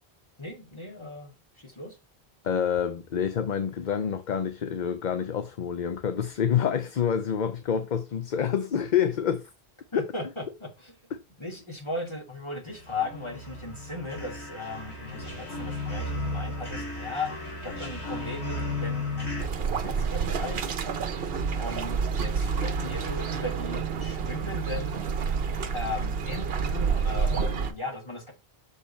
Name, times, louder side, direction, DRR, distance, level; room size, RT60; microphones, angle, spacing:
voice 1, 0.4-2.0 9.9-10.9 11.4-20.9 21.6-25.0 25.7-28.3, left 2 dB, 25° left, 2.3 m, -37 dB
voice 2, 2.4-9.5 9.9-10.1 11.1-11.2, left 8 dB, 50° left, 0.7 m, -27 dB
sound 1, 12.7-19.4, left 2 dB, 90° left, 2.9 m, -34 dB
sound 2, 19.4-27.7, right 6 dB, 65° right, 1.1 m, -29 dB
6.6 x 5.2 x 4.2 m
omnidirectional pair, 1.1 m